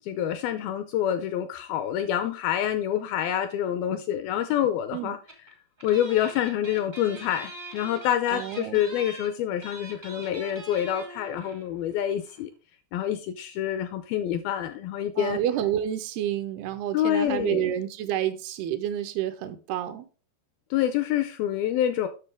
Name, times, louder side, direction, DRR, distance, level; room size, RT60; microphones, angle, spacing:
voice 1, 0.0-5.2 5.8-12.5 12.9-15.4 16.9-17.7 20.7-22.1, left 10 dB, 80° left, 2.2 m, -27 dB
sound 1, 5.3-5.5 5.8-11.7 11.9-12.0 12.2-12.4, right 2 dB, 55° right, 0.4 m, -43 dB
voice 2, 8.3-8.8 15.2-20.1, right 11 dB, 80° right, 2.6 m, -29 dB
9.9 x 6.4 x 3.4 m
omnidirectional pair, 4.8 m